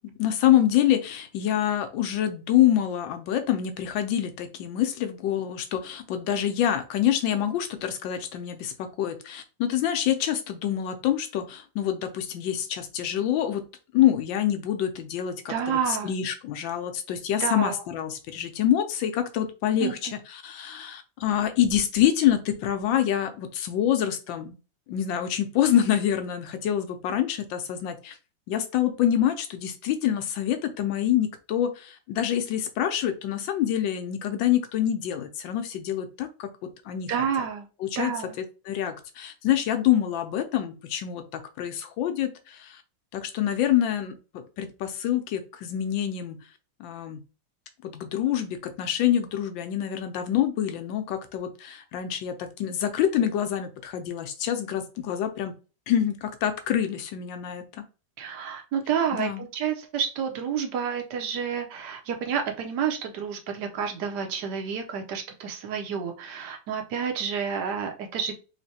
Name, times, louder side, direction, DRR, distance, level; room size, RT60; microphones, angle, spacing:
voice 1, 0.0-13.6 13.9-20.1 20.4-24.6 24.9-28.2 28.5-36.5 36.8-37.1 37.8-38.1 38.7-42.8 43.1-46.4 46.8-47.2 47.8-55.5 55.9-57.8 59.1-59.4, left 11 dB, 85° left, 7 dB, 1.4 m, -26 dB
voice 2, 15.5-16.1 17.4-17.8 19.8-20.1 37.1-37.7 38.0-38.4 58.2-68.4, right 7 dB, 70° right, 4 dB, 1.2 m, -29 dB
3.6 x 3.2 x 2.7 m, 0.33 s
omnidirectional pair, 2.0 m